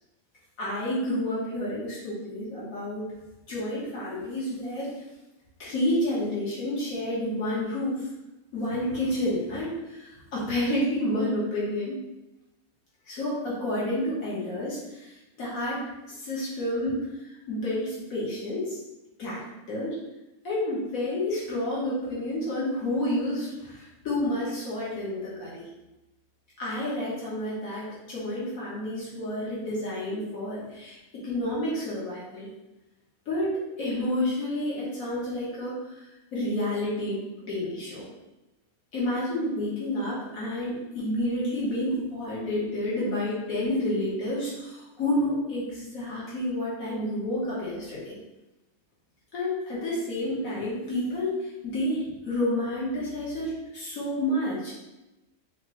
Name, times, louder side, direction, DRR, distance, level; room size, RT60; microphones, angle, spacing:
voice 1, 0.6-3.0 3.5-4.9 5.6-8.0 8.5-11.9 13.1-15.1 15.4-15.8 16.1-17.0 17.5-18.8 19.2-19.4 19.7-19.9 20.4-25.6 26.6-31.0 31.2-32.5 33.3-35.7 36.3-38.1 38.9-48.1 49.3-54.7, left 1 dB, 70° left, -7 dB, 1.4 m, -29 dB
4.9 x 2.0 x 2.9 m, 0.99 s
omnidirectional pair, 1.5 m